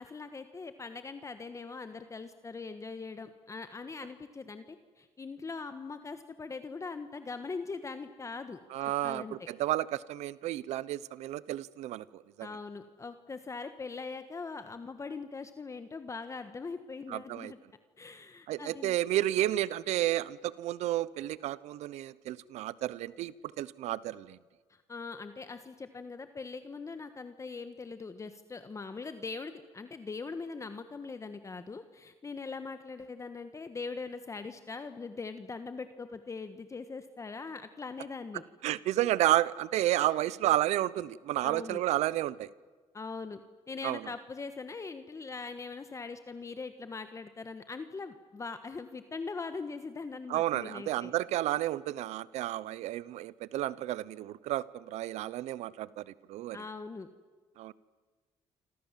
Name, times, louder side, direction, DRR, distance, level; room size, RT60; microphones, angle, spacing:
voice 1, 0.0-8.6 9.0-9.4 12.4-17.6 18.0-19.0 24.7-38.4 41.4-41.8 42.9-43.4 43.7-51.1 56.5-57.1, left 4 dB, 25° left, 9 dB, 1.4 m, -41 dB
voice 2, 8.7-12.5 17.1-17.5 18.5-24.4 38.6-42.5 43.8-44.0 50.3-56.6 57.6-57.7, right 14 dB, 85° right, 19 dB, 0.9 m, -31 dB
28.0 x 26.0 x 7.5 m, 1.4 s
cardioid pair, 105°, 11 cm